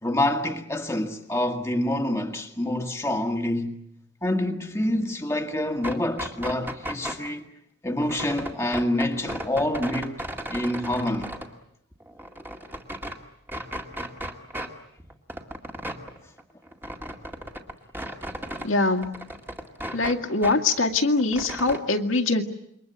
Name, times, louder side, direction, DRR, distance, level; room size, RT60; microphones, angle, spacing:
voice 1, 0.0-3.8 4.2-7.5 7.8-10.2 10.5-11.3, left 1 dB, 10° left, 1.7 m, -27 dB
sound 1, 5.7-7.3 8.0-11.5 11.9-13.2 13.5-14.7 15.0-18.7 19.0-20.6 20.9-21.8, equal, 10° right, 2.1 m, -36 dB
voice 2, 18.6-19.2 19.9-22.4, left 3 dB, 65° left, 2.1 m, -23 dB
28.0 x 23.5 x 8.1 m
head